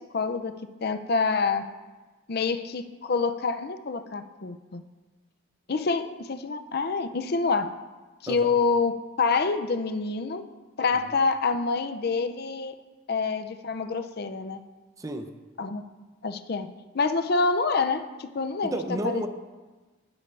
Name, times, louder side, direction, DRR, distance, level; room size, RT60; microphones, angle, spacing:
voice 1, 0.1-1.6 2.3-4.8 5.7-7.7 8.2-10.5 10.8-12.7 13.1-14.6 15.6-15.8 16.2-16.7 16.9-19.2, left 4 dB, 50° left, 9 dB, 0.5 m, -27 dB
voice 2, 8.3-8.6 15.0-15.3 18.6-19.3, right 1 dB, 15° right, 6 dB, 0.6 m, -31 dB
12.0 x 9.6 x 3.3 m, 1.2 s
head